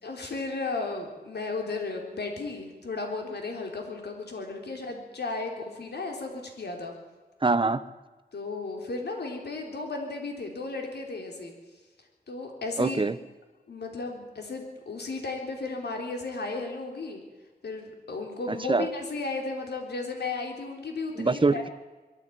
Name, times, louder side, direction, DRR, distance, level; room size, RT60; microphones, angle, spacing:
voice 1, 0.0-7.0 8.3-11.5 12.3-13.0 13.7-17.2 17.6-21.6, left 3 dB, 85° left, 2 dB, 3.7 m, -34 dB
voice 2, 7.4-7.8 12.8-13.1 18.5-18.9 21.2-21.7, right 3 dB, 30° right, 12 dB, 1.1 m, -24 dB
22.5 x 14.0 x 9.3 m, 1.3 s
wide cardioid pair, 60°, 17 cm